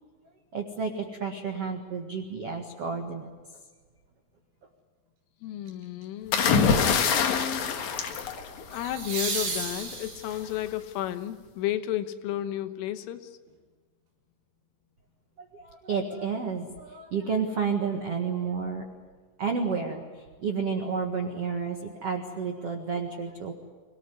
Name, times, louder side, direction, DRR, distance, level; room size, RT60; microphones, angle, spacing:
voice 1, 0.5-3.3 15.4-18.9 19.4-20.1 20.4-23.5, right 5 dB, 75° right, 4 dB, 1.4 m, -31 dB
voice 2, 5.4-7.6 8.2-8.4 8.7-13.4, left 12 dB, 85° left, 10 dB, 3.7 m, -33 dB
sound 1, 5.7-6.0 8.7-10.6 13.5-13.6, right 4 dB, 55° right, 7.2 m, -33 dB
sound 2, 6.3-9.1 10.3-10.6, left 6 dB, 60° left, 2.1 m, -25 dB
25.5 x 18.5 x 9.6 m, 1.5 s
omnidirectional pair, 5.6 m